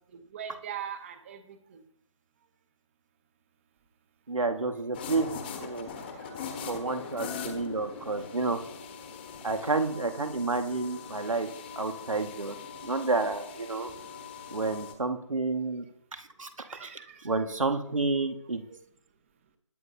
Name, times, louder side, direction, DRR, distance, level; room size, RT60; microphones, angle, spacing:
voice 1, 0.3-1.8 5.9-6.5 16.6-17.5, right 9 dB, 25° right, 9 dB, 1.2 m, -42 dB
voice 2, 4.3-5.3 5.6-5.9 6.7-8.6 9.4-11.5 11.8-12.6 12.8-13.9 14.5-15.9 16.1-16.5 16.8-16.9 17.2-18.6, right 3 dB, 80° right, 6 dB, 1.8 m, -30 dB
sound 1, 4.9-14.9, left 6 dB, 20° left, 1.2 m, -41 dB
20.5 x 9.7 x 2.8 m, 0.71 s
figure-of-eight pair, 160°, 17 cm